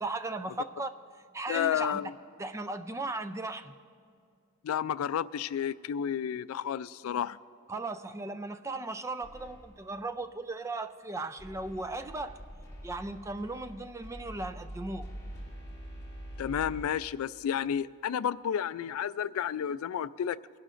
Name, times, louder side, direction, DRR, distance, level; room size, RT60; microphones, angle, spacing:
voice 1, 0.0-0.9 1.3-2.0 2.4-3.7 7.7-12.4 12.8-15.1, right 2 dB, 15° right, 10 dB, 0.4 m, -37 dB
voice 2, 1.5-2.1 4.6-7.4 16.4-20.4, left 9 dB, 85° left, 16 dB, 0.3 m, -31 dB
sound 1, 9.2-9.9 11.4-16.9, equal, 20° left, 2.4 m, -45 dB
23.5 x 11.5 x 2.5 m, 2.3 s
head